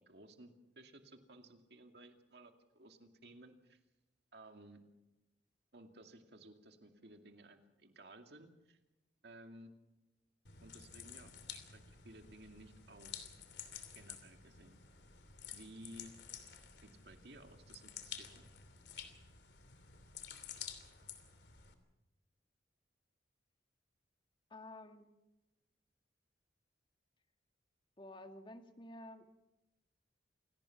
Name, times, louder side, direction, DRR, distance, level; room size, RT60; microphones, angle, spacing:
voice 1, 0.0-3.8 4.3-4.8 5.7-8.8 9.2-9.7 10.6-13.3 13.9-14.8 15.5-16.1 16.8-18.5, right 1 dB, 65° right, 5 dB, 2.4 m, -57 dB
sound 1, 10.4-21.7, left 8 dB, 75° left, 3.0 m, -51 dB
voice 2, 24.5-25.1 28.0-29.2, left 1 dB, 30° left, 6 dB, 1.9 m, -51 dB
28.0 x 18.0 x 5.9 m, 0.99 s
head